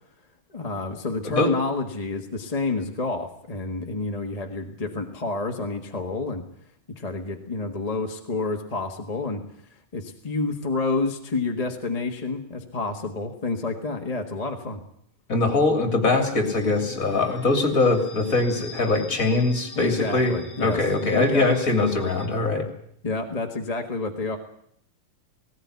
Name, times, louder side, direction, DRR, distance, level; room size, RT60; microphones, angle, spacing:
voice 1, 0.5-6.4 7.0-9.4 9.9-14.8 19.7-21.6 23.0-24.4, left 3 dB, 20° left, 3 dB, 1.4 m, -29 dB
voice 2, 15.3-22.7, left 3 dB, 40° left, 5 dB, 3.3 m, -22 dB
sound 1, 16.4-22.3, left 1 dB, 5° right, 2.4 m, -43 dB
18.0 x 18.0 x 9.5 m, 0.69 s
omnidirectional pair, 2.4 m